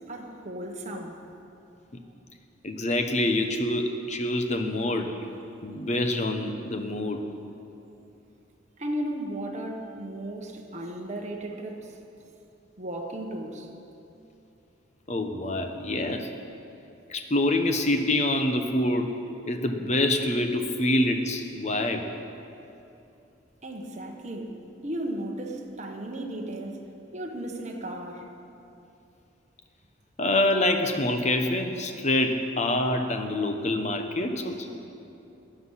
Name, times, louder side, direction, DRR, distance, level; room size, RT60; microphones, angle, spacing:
voice 1, 0.1-1.2 8.8-12.3 12.8-13.7 23.6-26.9 27.1-28.3 34.6-34.7, right 1 dB, 35° right, 1 dB, 1.3 m, -35 dB
voice 2, 2.6-5.1 5.6-7.2 15.1-16.3 17.1-19.1 19.5-22.0 30.2-34.8, left 1 dB, 35° left, 6 dB, 0.9 m, -26 dB
15.5 x 10.5 x 5.7 m, 2.8 s
head